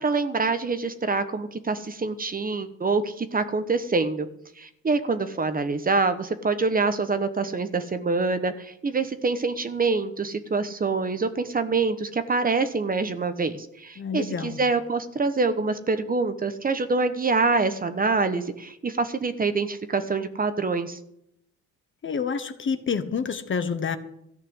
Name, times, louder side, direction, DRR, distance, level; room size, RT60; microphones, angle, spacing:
voice 1, 0.0-4.3 4.6-21.0, right 4 dB, 30° right, 10 dB, 1.1 m, -25 dB
voice 2, 14.0-14.6 22.0-24.0, left 6 dB, 40° left, 10 dB, 1.1 m, -28 dB
14.0 x 5.8 x 9.8 m, 0.76 s
cardioid pair, 90°, 30 cm